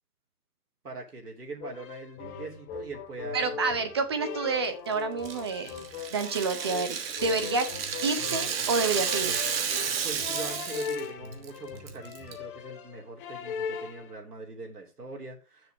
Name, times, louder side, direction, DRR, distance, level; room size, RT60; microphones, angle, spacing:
voice 1, 0.8-3.9 9.8-15.7, right 3 dB, 90° right, 0 dB, 3.3 m, -42 dB
sound 1, 1.6-14.2, left 6 dB, 35° left, 1.8 m, -39 dB
voice 2, 3.3-5.7 6.1-7.7 8.0-9.4, right 4 dB, 20° right, 9 dB, 0.5 m, -29 dB
Rattle (instrument), 5.2-11.0 11.3-11.5 11.9-12.3, right 7 dB, 40° right, 1.5 m, -32 dB
7.2 x 6.8 x 5.2 m, 0.30 s
figure-of-eight pair, 135°, 45 cm